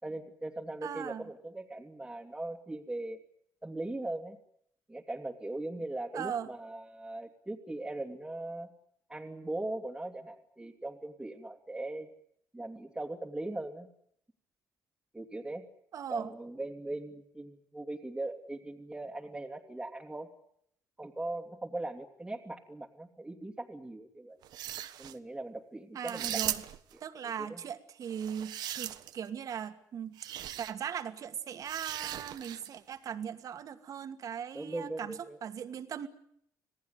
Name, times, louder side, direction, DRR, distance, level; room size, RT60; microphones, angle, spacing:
voice 1, 0.0-3.2 3.6-4.4 4.9-8.7 9.1-12.1 12.5-13.9 15.1-15.6 16.1-20.3 21.0-24.4 25.0-26.4 27.4-27.6 34.5-35.4, right 2 dB, 10° right, 0 dB, 2.8 m, -39 dB
voice 2, 0.8-1.3 6.1-6.5 15.9-16.3 25.9-26.6 27.0-30.2 30.6-36.1, right 8 dB, 55° right, 9 dB, 2.4 m, -39 dB
sound 1, 24.4-25.1 26.0-26.9 28.1-29.3 30.2-30.7 31.6-32.7, right 12 dB, 75° right, 1.5 m, -38 dB
27.0 x 18.5 x 9.7 m, 0.71 s
cardioid pair, 110°, 7 cm